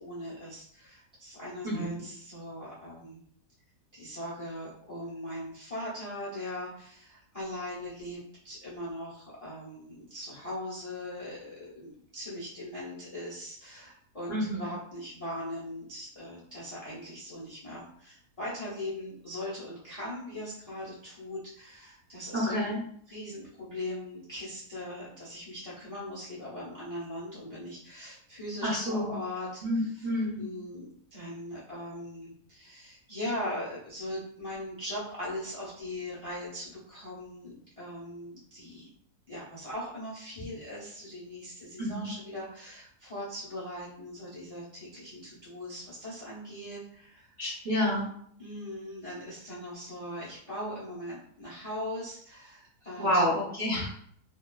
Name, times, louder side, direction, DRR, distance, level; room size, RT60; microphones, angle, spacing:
voice 1, 0.0-3.2 3.9-22.7 23.1-30.1 30.4-38.9 39.3-47.3 48.4-53.2, left 1 dB, 45° left, -8 dB, 0.4 m, -40 dB
voice 2, 1.6-2.0 14.3-14.6 22.3-22.8 28.6-29.1 29.6-30.4 41.8-42.1 47.4-48.1 53.0-53.9, equal, 60° right, -7 dB, 0.4 m, -29 dB
2.8 x 2.3 x 2.2 m, 0.63 s
omnidirectional pair, 1.7 m